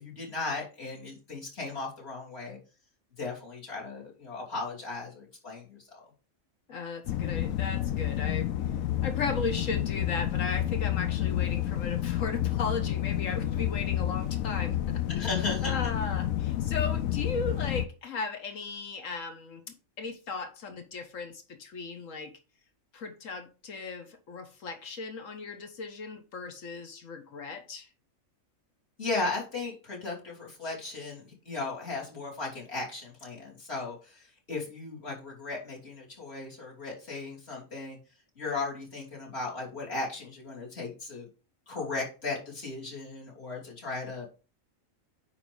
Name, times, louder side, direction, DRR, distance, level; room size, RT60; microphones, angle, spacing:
voice 1, 0.0-2.6 3.2-6.0 15.1-15.8 29.0-38.0 38.4-41.3 41.7-44.3, left 3 dB, 50° left, 3.3 m, -36 dB
voice 2, 6.7-8.5 9.0-15.3 15.6-22.3 22.9-27.9, left 4 dB, 70° left, 1.4 m, -36 dB
sound 1, 7.1-17.9, left 12 dB, 85° left, 1.1 m, -30 dB
9.5 x 3.5 x 5.2 m
omnidirectional pair, 1.4 m